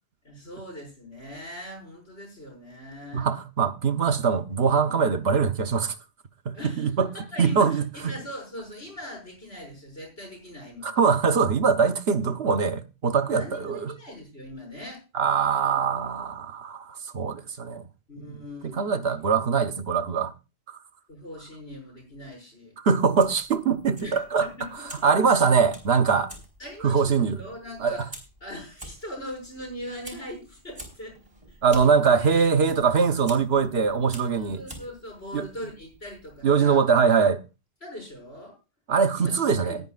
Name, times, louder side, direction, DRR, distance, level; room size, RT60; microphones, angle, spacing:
voice 1, 0.2-3.4 6.5-7.8 8.1-11.0 13.3-15.0 15.6-16.1 18.1-19.0 21.1-22.8 24.0-25.0 26.6-28.1 28.4-31.2 31.5-31.6 32.2-32.3 34.4-36.8 37.8-38.6 39.1-39.3 39.6-39.8, left 1 dB, 80° left, 6.4 m, -41 dB
voice 2, 3.1-6.0 6.4-7.1 7.4-8.1 10.8-13.9 15.1-17.8 18.2-18.3 18.6-20.3 20.7-20.8 22.8-24.5 25.0-26.3 26.8-27.4 27.8-28.0 31.6-34.6 35.3-35.5 36.4-37.4 38.9-39.8, right 5 dB, 75° right, 1.3 m, -22 dB
Fire, 23.0-36.4, right 1 dB, 30° right, 4.4 m, -48 dB
20.5 x 9.7 x 2.5 m
omnidirectional pair, 1.0 m